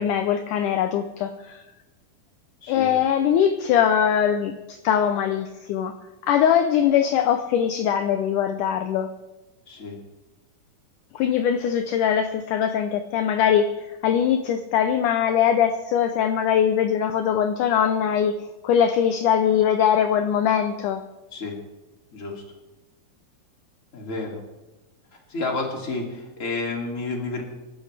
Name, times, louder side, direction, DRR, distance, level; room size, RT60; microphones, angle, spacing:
voice 1, 0.0-1.6 2.7-6.0 6.2-9.1 11.2-13.7 14.0-18.4 18.6-21.0, left 8 dB, 75° left, 8 dB, 2.0 m, -21 dB
voice 2, 9.7-10.0 21.3-21.6 22.1-22.4 23.9-24.4 25.3-27.4, left 3 dB, 25° left, 0 dB, 2.6 m, -30 dB
25.5 x 12.5 x 3.3 m, 1.1 s
omnidirectional pair, 4.1 m